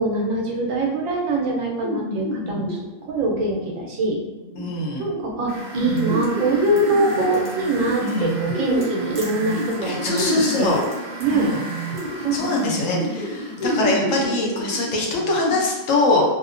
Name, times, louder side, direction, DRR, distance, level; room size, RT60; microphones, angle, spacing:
voice 1, 0.0-4.2 5.0-10.8 11.2-11.5 12.2-12.5, right 2 dB, 75° right, -1 dB, 1.0 m, -23 dB
sound 1, 1.8-15.5, equal, 50° left, 0.5 m, -29 dB
voice 2, 4.6-5.1 8.0-8.3 9.8-10.8 11.3-11.6 12.2-16.3, left 2 dB, 75° left, -2 dB, 1.0 m, -23 dB
sound 2, 5.5-13.7, right 2 dB, 45° right, 0.6 m, -36 dB
2.7 x 2.1 x 2.4 m, 1.1 s
omnidirectional pair, 1.4 m